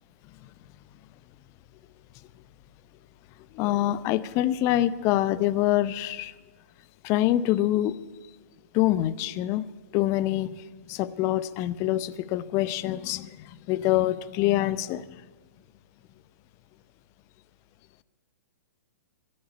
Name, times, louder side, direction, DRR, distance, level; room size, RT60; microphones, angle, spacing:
voice 1, 3.5-6.3 7.0-8.0 8.7-9.6 9.9-10.5 10.9-15.0, left 14 dB, 35° left, 17 dB, 0.6 m, -25 dB
12.0 x 11.0 x 9.8 m, 1.3 s
hypercardioid pair, 120°, 9 cm